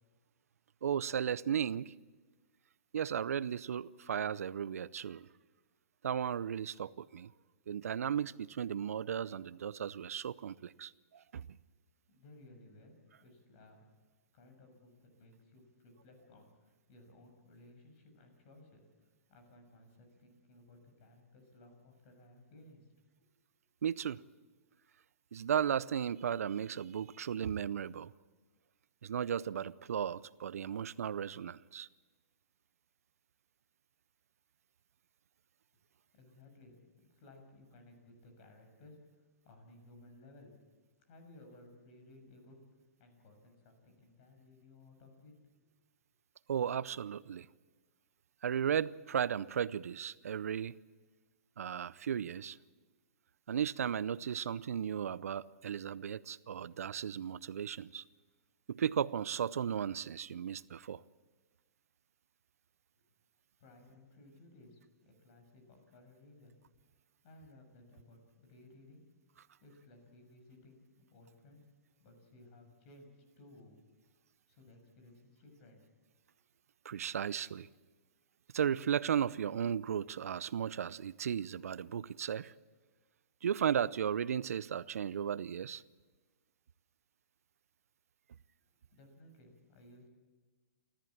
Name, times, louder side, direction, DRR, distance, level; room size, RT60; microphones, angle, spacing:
voice 1, 0.8-1.9 2.9-5.3 6.0-7.3 7.7-11.5 23.8-24.2 25.3-28.1 29.0-31.9 46.5-47.5 48.4-50.8 51.6-52.6 53.5-58.0 58.7-61.0 76.8-77.7 78.5-82.5 83.4-85.8, right 8 dB, 80° right, 0.6 m, -35 dB
voice 2, 12.1-12.9 13.2-13.9 14.3-22.9 36.1-40.5 41.0-42.6 43.0-45.3 62.9-63.1 63.6-66.6 67.2-69.0 69.6-71.6 72.0-73.8 74.5-75.8 88.9-90.1, left 2 dB, 50° left, 6.8 m, -59 dB
29.5 x 14.0 x 7.3 m
hypercardioid pair, 130°, 8 cm